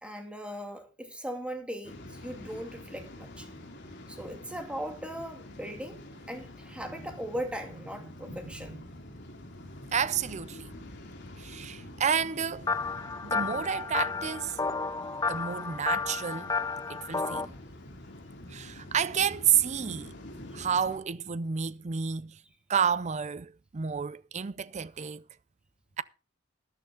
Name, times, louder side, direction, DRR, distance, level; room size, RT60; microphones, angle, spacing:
voice 1, 0.0-3.5 4.1-8.7 11.6-11.7 17.3-17.7, equal, 5° right, 2.3 m, -39 dB
Waves surf, 1.8-21.0, left 1 dB, 60° left, 2.8 m, -47 dB
voice 2, 8.3-8.8 9.9-10.7 11.4-12.7 13.2-14.6 15.3-16.5 16.9-17.5 18.5-20.1 20.5-22.4 22.7-25.2 26.0-26.1, right 7 dB, 35° right, 0.5 m, -30 dB
sound 1, 12.7-17.4, left 4 dB, 20° left, 0.5 m, -32 dB
13.0 x 11.0 x 3.7 m
head